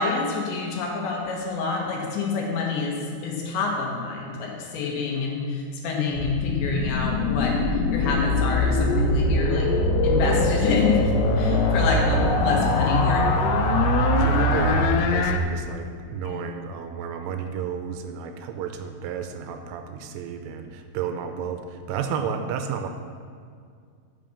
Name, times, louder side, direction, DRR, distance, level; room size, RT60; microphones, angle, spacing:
voice 1, 0.0-7.6 7.9-9.8 10.0-13.4 16.2-16.4, left 4 dB, 70° left, -1 dB, 3.3 m, -27 dB
sound 1, 6.1-15.4, left 4 dB, 90° left, 3.3 m, -23 dB
sound 2, 8.6-14.5, right 9 dB, 15° right, 2.1 m, -28 dB
sound 3, 11.3-14.8, left 3 dB, 55° left, 3.3 m, -28 dB
voice 2, 14.2-22.9, right 7 dB, 85° right, 6 dB, 3.1 m, -31 dB
9.2 x 7.1 x 7.0 m, 2.1 s
omnidirectional pair, 5.8 m